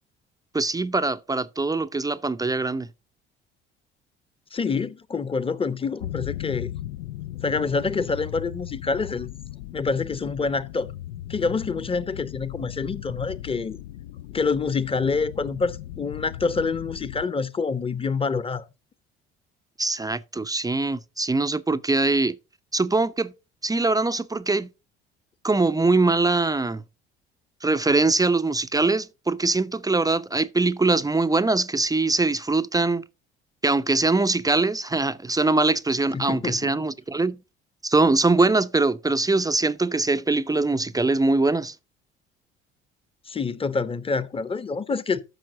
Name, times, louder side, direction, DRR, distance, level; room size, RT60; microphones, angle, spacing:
voice 1, 0.5-2.9 19.8-22.4 22.7-23.3 23.6-24.7 25.4-26.8 27.6-33.0 33.6-37.4 37.8-41.8, right 3 dB, 10° right, 0.5 m, -22 dB
voice 2, 4.5-6.7 7.4-9.4 9.7-10.9 11.3-13.8 14.3-18.7 36.1-36.8 43.3-45.2, left 4 dB, 20° left, 0.8 m, -27 dB
sound 1, 6.0-17.3, left 13 dB, 75° left, 0.5 m, -37 dB
13.0 x 6.1 x 3.9 m
figure-of-eight pair, 55°, 31 cm